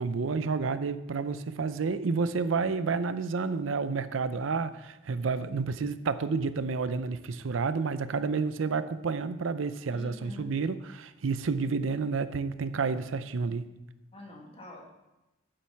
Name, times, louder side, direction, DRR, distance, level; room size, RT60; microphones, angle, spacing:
voice 1, 0.0-13.7, right 4 dB, 80° right, 13 dB, 0.5 m, -30 dB
voice 2, 9.9-10.6 14.1-14.9, left 2 dB, 30° left, 0 dB, 1.9 m, -45 dB
8.5 x 7.9 x 5.7 m, 1.0 s
head